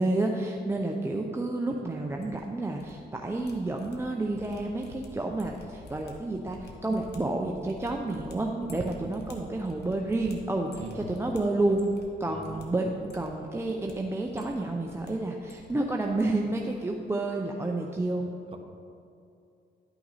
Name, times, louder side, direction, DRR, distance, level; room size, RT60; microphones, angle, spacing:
voice 1, 0.0-11.8 12.2-18.3, right 2 dB, 15° right, 1 dB, 0.6 m, -30 dB
sound 1, 2.0-2.9 3.2-12.1 12.4-12.6 13.0-13.9 14.3-15.1 15.4-16.2 16.5-16.8 17.1-17.3, left 2 dB, 55° left, 1.4 m, -50 dB
voice 2, 12.3-12.7 18.5-18.6, right 4 dB, 30° right, 3 dB, 1.1 m, -40 dB
11.5 x 5.8 x 4.1 m, 2.6 s
cardioid pair, 90°, 20 cm